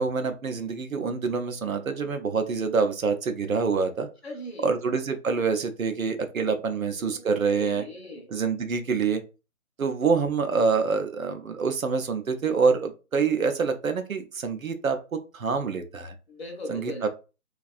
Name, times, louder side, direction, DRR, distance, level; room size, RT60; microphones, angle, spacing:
voice 1, 0.0-4.1 4.6-7.8 8.3-9.2 9.8-16.1 16.7-17.1, right 5 dB, 70° right, 0.6 m, -26 dB
voice 2, 4.2-4.7 6.5-8.3 16.3-17.1, left 1 dB, 45° left, 0.7 m, -40 dB
2.5 x 2.3 x 2.4 m
figure-of-eight pair, 150°, 43 cm